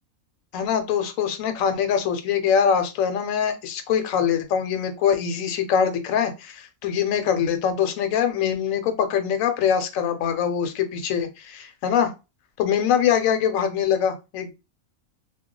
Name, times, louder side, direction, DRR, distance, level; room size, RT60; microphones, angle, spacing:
voice 1, 0.5-12.1 12.6-14.5, left 8 dB, 75° left, 8 dB, 1.0 m, -23 dB
2.3 x 2.3 x 3.6 m, 0.27 s
omnidirectional pair, 1.5 m